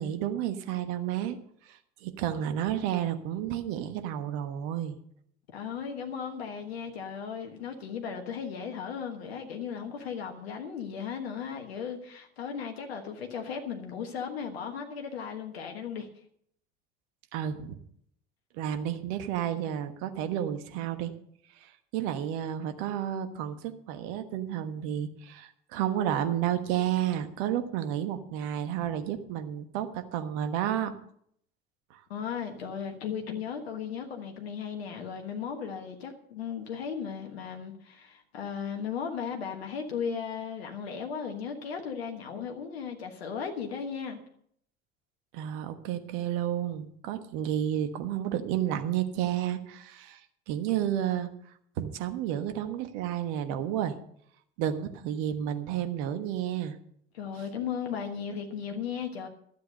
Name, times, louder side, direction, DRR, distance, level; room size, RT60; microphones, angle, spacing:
voice 1, 0.0-1.4 1.6-5.0 17.3-17.8 18.5-21.1 21.6-30.9 31.9-32.0 45.3-50.2 50.5-51.3 51.8-54.0 54.6-56.8, right 10 dB, 65° right, 1.3 m, -31 dB
voice 2, 5.5-16.1 32.1-44.2 57.1-59.3, left 7 dB, 80° left, 1.4 m, -36 dB
12.5 x 8.3 x 6.5 m
hypercardioid pair, 65°, 31 cm